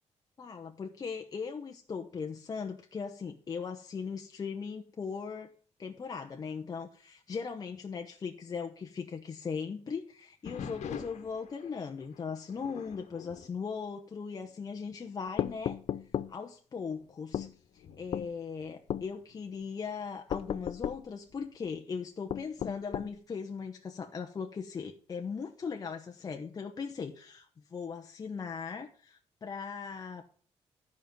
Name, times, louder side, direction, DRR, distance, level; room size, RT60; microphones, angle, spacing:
voice 1, 0.4-5.5 5.8-15.8 16.3-17.5 17.7-30.2, left 5 dB, 35° left, 3 dB, 0.9 m, -39 dB
sound 1, 10.4-14.6 14.9-15.3 15.9-16.0 16.7-19.4 21.3-21.8, left 7 dB, 75° left, 1.3 m, -47 dB
sound 2, 15.4-16.3 17.3-17.5 18.1-18.3 18.9-19.1 20.3-21.0 22.3-23.1, left 10 dB, 55° left, 0.5 m, -34 dB
12.0 x 5.3 x 7.4 m, 0.43 s
wide cardioid pair, 155°, 12 cm